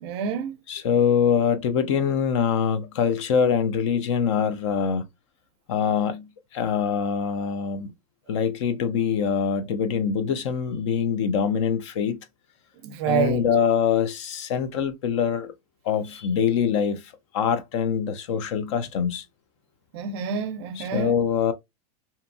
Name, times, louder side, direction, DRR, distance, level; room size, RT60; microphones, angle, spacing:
voice 1, 0.0-0.5 12.8-13.4 19.9-21.2, right 7 dB, 45° right, 0.5 m, -27 dB
voice 2, 0.7-5.1 5.7-7.9 8.3-12.2 13.0-15.5 15.8-17.0 17.3-19.2 20.8-21.5, left 7 dB, 50° left, 0.4 m, -24 dB
2.7 x 2.2 x 2.5 m
supercardioid pair, 170°, 19 cm